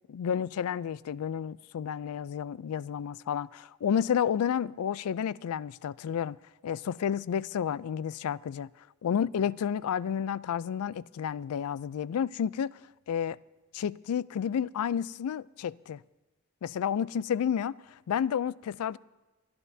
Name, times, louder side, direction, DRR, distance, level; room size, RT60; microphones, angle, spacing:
voice 1, 0.1-6.4 6.6-8.7 9.0-12.8 13.1-13.4 13.7-16.0 16.6-19.0, left 8 dB, 80° left, 0.3 m, -31 dB
25.5 x 11.0 x 2.7 m
head